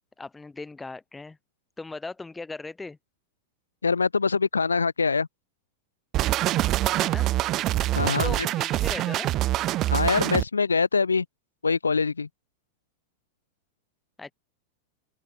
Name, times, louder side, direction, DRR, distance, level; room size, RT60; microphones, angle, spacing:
voice 1, 0.2-1.4 1.8-3.0 6.9-7.3 8.1-9.3 14.2-14.3, left 3 dB, 10° left, 3.6 m, -38 dB
voice 2, 3.8-5.3 8.0-8.5 9.9-11.3 11.6-12.3, left 4 dB, 75° left, 1.7 m, -24 dB
sound 1, 6.1-10.4, right 15 dB, 35° right, 0.4 m, -25 dB
open air
figure-of-eight pair, 90°, 0 cm